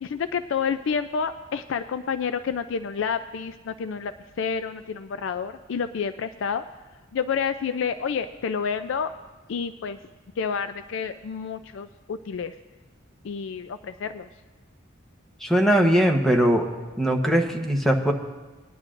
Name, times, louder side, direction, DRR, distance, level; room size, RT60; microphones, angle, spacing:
voice 1, 0.0-6.6 7.1-9.1 9.5-10.0 10.4-12.5 13.2-14.3, left 6 dB, 65° left, 10 dB, 0.4 m, -29 dB
voice 2, 15.4-16.7 17.0-18.1, equal, ahead, 2 dB, 0.9 m, -20 dB
19.5 x 10.5 x 2.5 m, 1.3 s
head